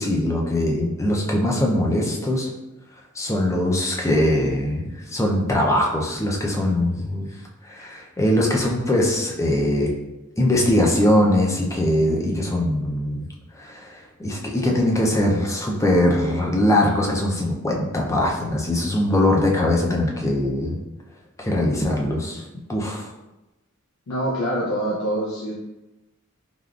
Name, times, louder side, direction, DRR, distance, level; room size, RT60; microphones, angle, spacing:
voice 1, 0.0-2.5 3.2-7.3 7.6-9.9 10.4-13.3 13.5-20.8 21.4-22.4 22.7-23.1, left 1 dB, 15° left, -1 dB, 0.4 m, -21 dB
voice 2, 24.1-25.6, right 1 dB, 85° left, -5 dB, 0.5 m, -25 dB
3.5 x 2.3 x 2.3 m, 0.99 s
head